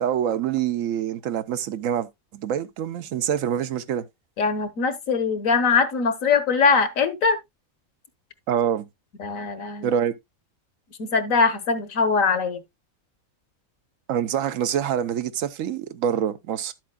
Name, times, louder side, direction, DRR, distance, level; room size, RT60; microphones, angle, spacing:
voice 1, 0.0-4.0 8.5-8.8 9.8-10.1 14.1-16.7, right 9 dB, 75° right, 1.0 m, -25 dB
voice 2, 4.4-7.4 9.2-9.9 11.0-12.6, left 5 dB, 75° left, 1.5 m, -22 dB
11.0 x 7.7 x 2.2 m
omnidirectional pair, 1.4 m